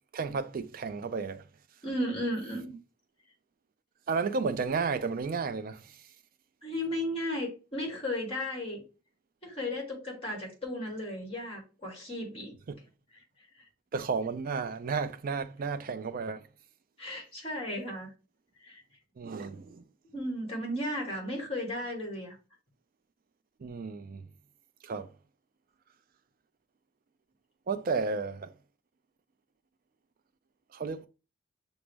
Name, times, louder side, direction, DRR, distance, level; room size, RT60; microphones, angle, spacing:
voice 1, 0.1-1.5 4.1-6.1 12.7-12.8 13.9-16.5 19.2-19.9 23.6-24.3 24.8-25.1 27.7-28.5 30.7-31.1, right 4 dB, 50° right, 0.4 m, -33 dB
voice 2, 1.8-2.8 6.6-8.8 9.4-12.5 17.0-18.1 18.6-18.8 20.1-22.3, left 1 dB, 30° left, 1.6 m, -35 dB
6.1 x 2.1 x 3.3 m
head